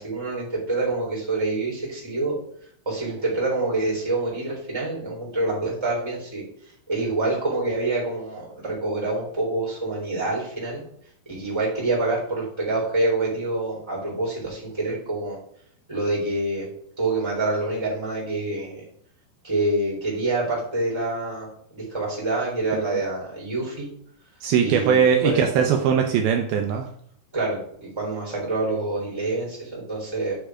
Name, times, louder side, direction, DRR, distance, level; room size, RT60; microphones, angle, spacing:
voice 1, 0.0-2.3 2.9-6.4 6.9-10.8 11.3-15.4 15.9-16.7 17.0-18.8 19.4-21.5 21.7-23.9 24.6-25.4 27.3-30.4, right 2 dB, 5° right, -3 dB, 3.4 m, -26 dB
voice 2, 24.4-26.9, right 7 dB, 80° right, 4 dB, 2.5 m, -20 dB
9.0 x 5.2 x 4.9 m, 0.66 s
omnidirectional pair, 4.6 m